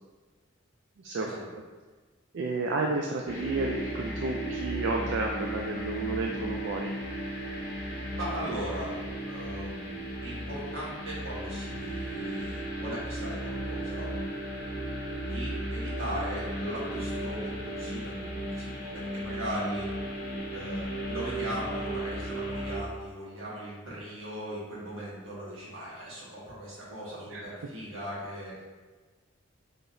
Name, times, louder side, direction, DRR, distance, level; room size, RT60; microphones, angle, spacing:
voice 1, 1.0-1.3 2.3-6.9 27.3-27.4, right 3 dB, 60° right, 0 dB, 0.3 m, -31 dB
sound 1, 3.3-22.8, right 1 dB, 45° left, 0.8 m, -35 dB
voice 2, 8.2-8.9 9.2-14.1 15.2-19.9 20.5-28.5, equal, 80° right, -6 dB, 1.3 m, -39 dB
4.7 x 3.0 x 2.6 m, 1.3 s
head